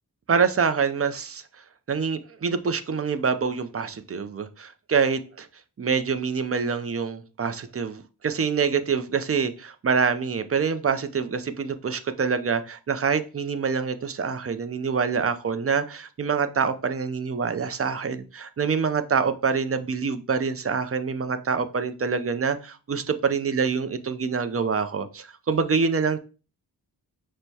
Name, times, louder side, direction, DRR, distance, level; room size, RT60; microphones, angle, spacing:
voice 1, 0.3-1.4 1.9-5.5 5.8-26.2, right 5 dB, 35° right, 11 dB, 0.4 m, -26 dB
6.1 x 2.2 x 2.7 m, 0.35 s
wide cardioid pair, 65°, 41 cm